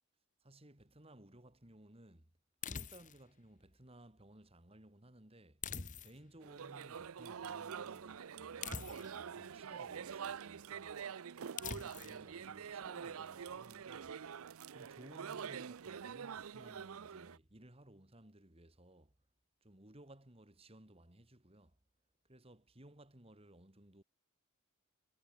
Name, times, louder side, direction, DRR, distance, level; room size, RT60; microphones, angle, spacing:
voice 1, 0.4-2.3 2.6-5.6 6.0-11.0 11.6-14.2 14.7-19.1 19.6-21.8 22.3-24.0, right 1 dB, 25° right, 2.4 m, -59 dB
sound 1, 2.6-3.3 5.6-6.4 8.6-9.3 11.6-12.2, left 6 dB, 35° left, 1.2 m, -44 dB
sound 2, 6.4-17.4, right 7 dB, 80° right, 0.5 m, -46 dB
head